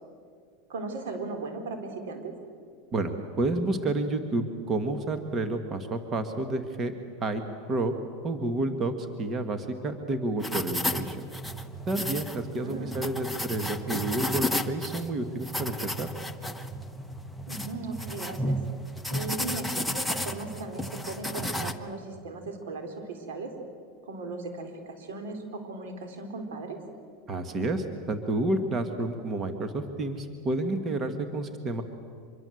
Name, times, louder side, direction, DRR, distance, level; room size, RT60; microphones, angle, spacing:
voice 1, 0.7-2.3 12.6-12.9 17.5-18.6 19.1-23.5 24.1-26.8, right 3 dB, 85° right, 5 dB, 4.1 m, -37 dB
voice 2, 2.9-6.9 7.2-7.4 7.7-7.9 8.2-11.3 11.9-16.1 27.3-31.8, right 2 dB, 30° right, 7 dB, 1.8 m, -30 dB
sound 1, 10.4-21.7, equal, ahead, 1.1 m, -33 dB
25.5 x 23.0 x 7.9 m, 2.2 s
supercardioid pair, 135°, 0 cm